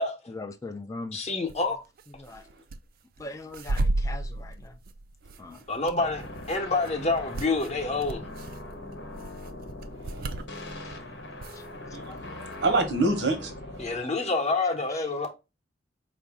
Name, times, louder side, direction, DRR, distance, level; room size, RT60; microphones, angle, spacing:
voice 1, 0.3-1.2 2.2-2.4 3.2-4.7 5.4-5.6 12.1-12.5 14.9-15.0, left 2 dB, 20° left, 0.4 m, -40 dB
voice 2, 1.1-1.8 5.7-8.2 13.8-15.3, left 3 dB, 40° left, 0.8 m, -27 dB
sound 1, 1.5-1.7 2.0-2.8 3.2-11.0 11.4-12.1 12.4-12.8, right 2 dB, 55° right, 0.4 m, -33 dB
sound 2, 6.0-14.0, left 2 dB, 85° left, 0.9 m, -41 dB
voice 3, 10.1-10.4 10.7-11.0 11.9-12.3 12.6-13.5 14.2-14.3, right 2 dB, 75° right, 1.1 m, -27 dB
4.7 x 2.6 x 3.4 m
head